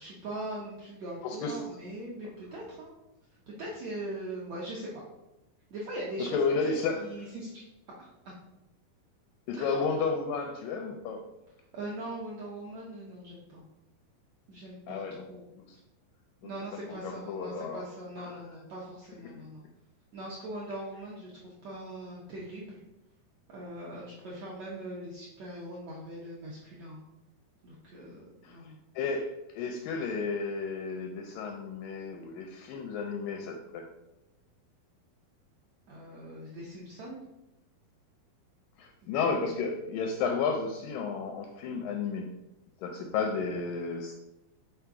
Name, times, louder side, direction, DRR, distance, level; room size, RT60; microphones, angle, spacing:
voice 1, 0.0-2.9 3.5-4.9 5.7-6.4 6.6-7.6 8.0-8.1 9.5-9.8 11.7-13.6 14.5-15.5 16.4-19.6 20.1-22.8 23.5-27.0 27.6-28.8 35.9-37.2 39.0-39.2, right 1 dB, 75° right, -5 dB, 1.5 m, -41 dB
voice 2, 1.2-1.6 6.2-7.3 9.5-11.2 14.9-15.2 15.7-15.8 16.4-16.5 16.9-17.8 18.2-18.4 19.2-19.3 28.4-28.6 29.0-33.8 38.8-42.4 42.8-44.1, left 5 dB, 85° left, 3 dB, 2.0 m, -32 dB
5.7 x 3.8 x 4.7 m, 0.93 s
omnidirectional pair, 4.4 m